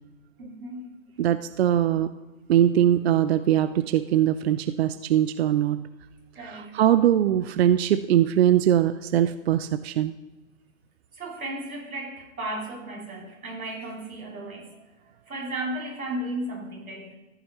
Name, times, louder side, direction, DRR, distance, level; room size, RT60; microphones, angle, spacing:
voice 1, 0.4-1.0 6.3-6.8 11.1-14.7 15.3-17.2, right 1 dB, 85° right, -1 dB, 2.9 m, -35 dB
voice 2, 1.2-2.1 2.5-5.9 6.4-10.1, right 11 dB, 50° right, 13 dB, 0.4 m, -21 dB
14.5 x 8.5 x 3.0 m, 1.1 s
hypercardioid pair, 135°, 41 cm